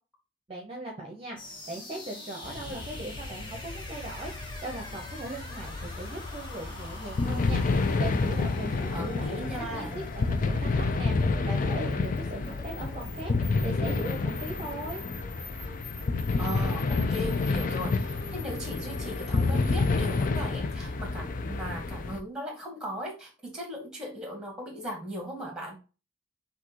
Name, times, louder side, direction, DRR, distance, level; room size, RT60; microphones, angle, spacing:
voice 1, 0.5-15.0, right 2 dB, 30° right, 1 dB, 0.8 m, -39 dB
sound 1, 1.4-20.3, left 1 dB, 25° left, 1.0 m, -45 dB
sound 2, 2.4-22.2, left 3 dB, 45° left, 0.4 m, -29 dB
voice 2, 8.9-9.9 16.4-25.8, equal, 5° right, 1 dB, 1.5 m, -38 dB
5.8 x 2.8 x 2.9 m, 0.32 s
head